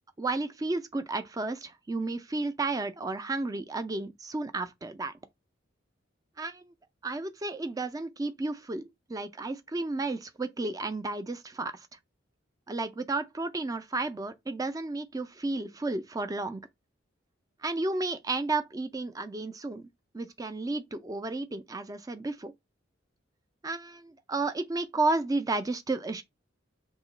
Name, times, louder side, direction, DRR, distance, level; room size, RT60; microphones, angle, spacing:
voice 1, 0.2-5.1 6.4-6.7 7.0-11.9 12.7-16.6 17.6-19.9 20.1-22.5 23.6-26.2, right 3 dB, 20° right, 0.4 m, -32 dB
2.8 x 2.3 x 3.9 m
head